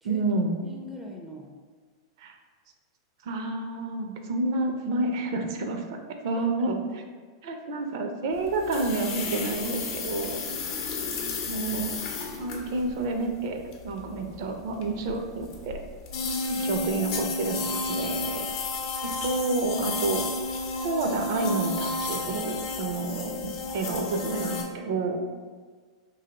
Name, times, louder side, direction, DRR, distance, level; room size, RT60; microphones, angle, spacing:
voice 1, 0.0-0.6 2.2-2.4 3.2-7.0 7.4-10.6 11.5-11.9 12.4-15.8 16.6-18.5 19.0-20.2 20.8-25.2, right 3 dB, 60° right, 4 dB, 0.5 m, -29 dB
voice 2, 0.6-1.5 6.3-6.4 10.7-11.0 16.2-16.7, left 1 dB, 5° right, -1 dB, 0.4 m, -41 dB
sound 1, 8.4-24.6, left 3 dB, 50° left, 0.6 m, -32 dB
2.9 x 2.6 x 2.9 m, 1.5 s
hypercardioid pair, 105°, 3 cm